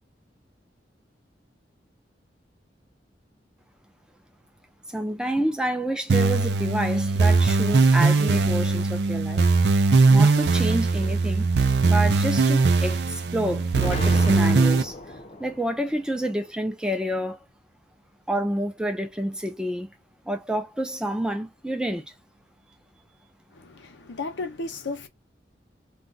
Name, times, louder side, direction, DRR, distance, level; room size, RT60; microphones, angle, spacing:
voice 1, 4.9-9.4 10.1-11.5 11.8-14.9 15.4-17.4 18.3-19.9 20.3-22.1, right 1 dB, 5° right, 0.5 m, -28 dB
sound 1, 6.1-14.8, right 3 dB, 65° right, 0.5 m, -20 dB
Explosion, 13.8-15.9, left 2 dB, 35° left, 0.7 m, -34 dB
voice 2, 23.5-25.1, left 3 dB, 90° left, 0.7 m, -34 dB
2.3 x 2.2 x 3.9 m
head